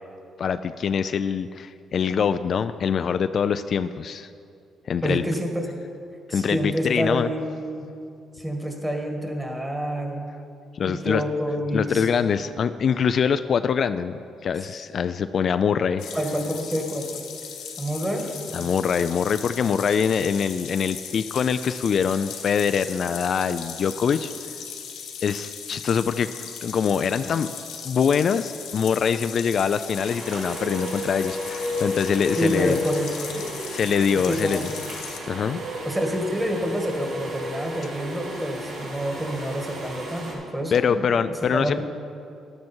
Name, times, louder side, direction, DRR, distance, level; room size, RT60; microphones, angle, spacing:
voice 1, 0.4-4.3 4.9-5.2 6.3-7.3 10.7-11.2 11.7-16.1 18.5-24.3 25.2-27.5 27.8-32.8 33.7-34.7 35.3-35.6 40.7-41.8, left 7 dB, 55° left, 11 dB, 0.3 m, -24 dB
voice 2, 5.0-5.7 6.3-7.9 8.4-10.3 10.9-12.1 16.1-17.2 17.8-18.7 32.4-33.4 34.1-34.6 35.8-41.8, equal, 15° right, 2 dB, 1.8 m, -28 dB
sound 1, 16.0-35.2, left 7 dB, 90° left, 1.3 m, -38 dB
sound 2, 30.0-40.3, right 1 dB, 80° right, 3.0 m, -38 dB
sound 3, 30.2-34.0 35.3-38.9, left 2 dB, 50° right, 1.5 m, -33 dB
12.0 x 9.6 x 4.5 m, 2.5 s
cardioid pair, 90°, 0 cm